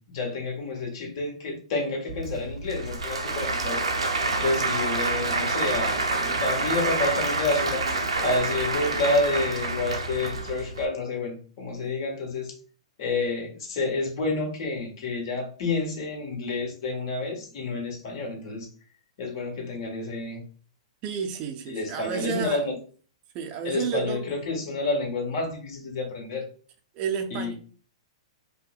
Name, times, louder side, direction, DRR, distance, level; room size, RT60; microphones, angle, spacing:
voice 1, 0.0-3.8 4.4-7.8 8.2-12.5 13.0-18.7 19.2-20.4 21.7-22.8 23.6-26.4 27.3-27.5, left 3 dB, 50° left, 1.4 m, -29 dB
Applause / Crowd, 2.1-10.8, right 3 dB, 90° right, 0.7 m, -27 dB
voice 2, 21.0-22.6 23.3-24.3 26.9-27.5, right 7 dB, 35° right, 0.5 m, -31 dB
5.1 x 2.2 x 2.3 m
figure-of-eight pair, 110°, 3 cm